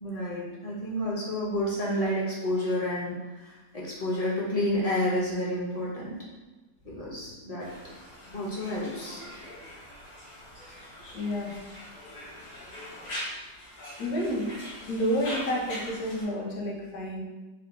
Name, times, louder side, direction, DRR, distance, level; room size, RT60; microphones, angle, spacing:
voice 1, 0.0-6.2 6.8-7.7 8.3-9.2 10.5-10.8, left 1 dB, 30° left, -5 dB, 0.7 m, -30 dB
Conversation, 7.6-16.2, equal, 80° left, 1.8 m, -42 dB
voice 2, 11.1-11.5 14.0-14.5 14.9-17.2, equal, 65° left, -2 dB, 1.3 m, -30 dB
4.2 x 2.1 x 4.2 m, 1.2 s
omnidirectional pair, 1.8 m